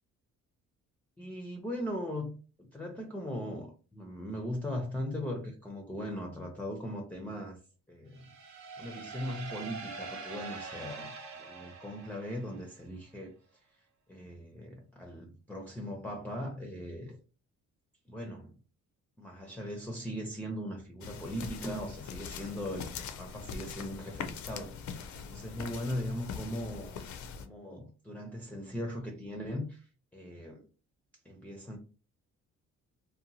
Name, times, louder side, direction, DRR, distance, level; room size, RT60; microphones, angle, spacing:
voice 1, 1.2-7.6 7.9-8.2 8.8-13.3 14.1-17.2 18.1-18.6 19.2-27.0 27.3-30.6 31.2-31.8, equal, 5° left, 0.5 m, -39 dB
sound 1, 8.1-12.8, right 4 dB, 65° right, 0.7 m, -44 dB
sound 2, 21.0-27.5, left 6 dB, 70° left, 0.5 m, -42 dB
2.8 x 2.2 x 2.6 m
cardioid pair, 90°, 30 cm